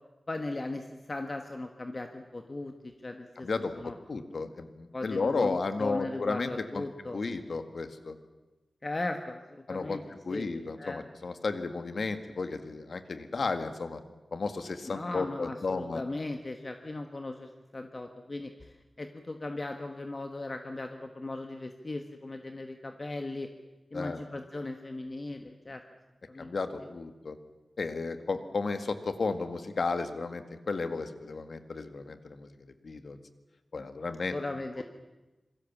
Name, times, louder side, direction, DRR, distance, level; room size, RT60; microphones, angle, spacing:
voice 1, 0.3-3.5 3.7-3.9 4.9-7.2 8.8-10.0 10.3-10.5 10.8-11.0 14.9-23.5 23.9-25.8 26.3-26.5 34.3-34.8, left 2 dB, 35° left, 5 dB, 1.4 m, -38 dB
voice 2, 3.4-6.8 7.1-8.2 9.7-10.0 10.3-14.0 14.3-16.0 23.9-24.2 26.4-27.4 27.8-32.5 32.8-33.2 33.7-34.3, left 4 dB, 65° left, 8 dB, 1.9 m, -33 dB
26.5 x 23.0 x 7.3 m, 1.1 s
wide cardioid pair, 120°, 0 cm